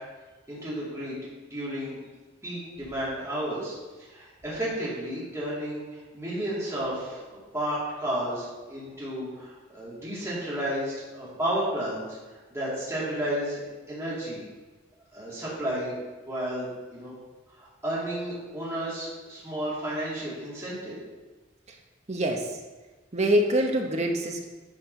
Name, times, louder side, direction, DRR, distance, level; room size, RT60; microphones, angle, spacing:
voice 1, 0.5-1.2 1.5-2.0 2.4-12.0 12.5-14.4 15.1-16.0 16.3-17.1 17.6-21.0, right 1 dB, 15° right, -8 dB, 2.4 m, -32 dB
voice 2, 22.1-22.6 23.1-24.4, right 1 dB, 30° right, 2 dB, 0.9 m, -25 dB
9.9 x 4.4 x 5.4 m, 1.2 s
head